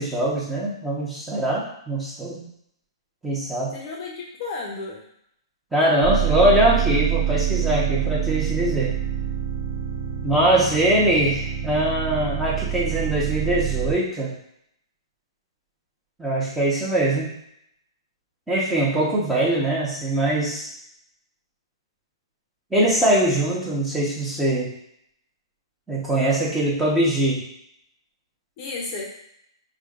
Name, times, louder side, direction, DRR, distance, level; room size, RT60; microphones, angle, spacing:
voice 1, 0.0-2.4 3.2-3.7 5.7-8.9 10.2-14.3 16.2-17.3 18.5-20.7 22.7-24.7 25.9-27.4, right 1 dB, 5° right, -7 dB, 1.1 m, -22 dB
voice 2, 3.7-5.0 28.6-29.1, left 3 dB, 40° left, -2 dB, 0.8 m, -33 dB
sound 1, 6.0-13.9, right 10 dB, 40° right, 1.0 m, -26 dB
5.0 x 2.4 x 2.5 m, 0.73 s
hypercardioid pair, 125°, 3 cm